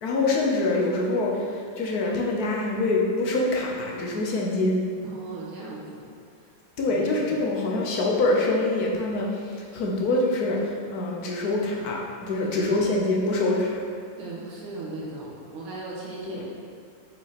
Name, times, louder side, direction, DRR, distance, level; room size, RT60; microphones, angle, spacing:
voice 1, 0.0-4.8 6.8-13.8 16.3-16.4, left 2 dB, 60° left, -2 dB, 1.1 m, -25 dB
voice 2, 5.0-6.0 6.9-7.0 7.7-7.8 12.3-12.9 14.2-16.4, right 3 dB, 80° right, -5 dB, 2.2 m, -37 dB
6.1 x 5.5 x 4.1 m, 2.2 s
omnidirectional pair, 2.3 m